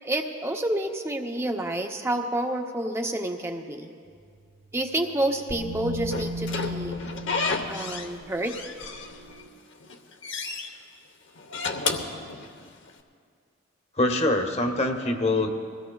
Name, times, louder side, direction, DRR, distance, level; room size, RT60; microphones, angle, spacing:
voice 1, 0.0-3.9 4.7-7.0 7.7-8.5, right 1 dB, 15° right, 4 dB, 0.6 m, -29 dB
sound 1, 4.1-9.5, left 1 dB, 60° right, 1.4 m, -38 dB
Slam / Squeak, 6.1-8.1 8.4-9.4 9.8-10.7 11.4-12.9, left 4 dB, 65° left, 0.9 m, -31 dB
voice 2, 14.0-15.5, left 2 dB, 30° left, 5 dB, 0.9 m, -24 dB
22.0 x 16.0 x 2.3 m, 2.2 s
head